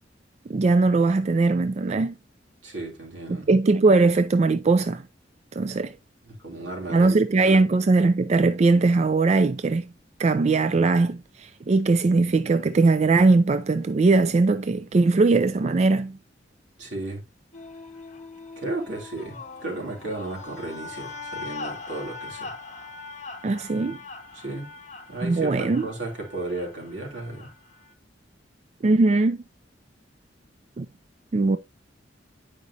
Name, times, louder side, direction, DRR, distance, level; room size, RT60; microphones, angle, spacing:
voice 1, 0.5-2.1 3.3-5.0 5.5-5.9 6.9-9.8 10.2-16.2 23.4-24.0 25.2-25.9 28.8-29.4 30.8-30.9 31.3-31.6, right 3 dB, 35° right, 0.4 m, -20 dB
voice 2, 2.6-3.5 6.2-7.6 16.8-17.2 18.6-22.5 24.3-24.7 25.1-27.5, right 2 dB, 85° right, 2.9 m, -34 dB
sound 1, 17.5-27.9, left 4 dB, 40° left, 0.8 m, -41 dB
9.5 x 5.1 x 2.7 m
head